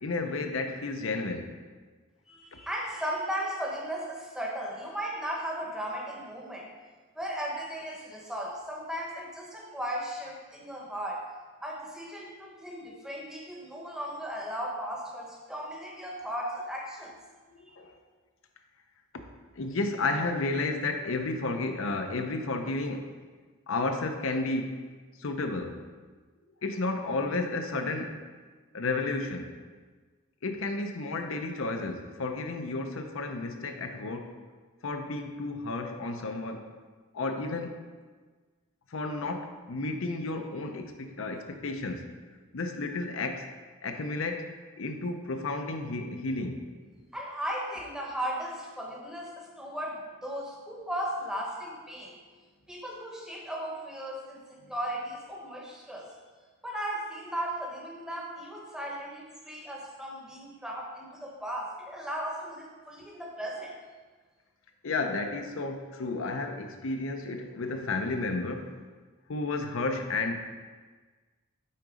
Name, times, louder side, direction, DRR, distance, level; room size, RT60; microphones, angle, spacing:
voice 1, 0.0-1.5 2.5-2.6 17.5-17.9 19.1-19.2 19.6-23.1 23.7-24.9 25.2-25.8 26.6-28.2 28.7-29.5 30.4-34.3 34.8-36.7 37.1-37.8 38.9-42.1 42.5-43.5 43.8-44.5 44.8-46.7 64.8-68.7 69.3-70.4, left 3 dB, 70° left, 5 dB, 0.6 m, -32 dB
voice 2, 2.3-6.7 7.1-11.3 11.6-17.2 17.7-17.8 47.1-52.2 52.7-56.1 56.6-63.8, equal, 5° right, -1 dB, 0.9 m, -36 dB
8.5 x 3.9 x 4.9 m, 1.4 s
head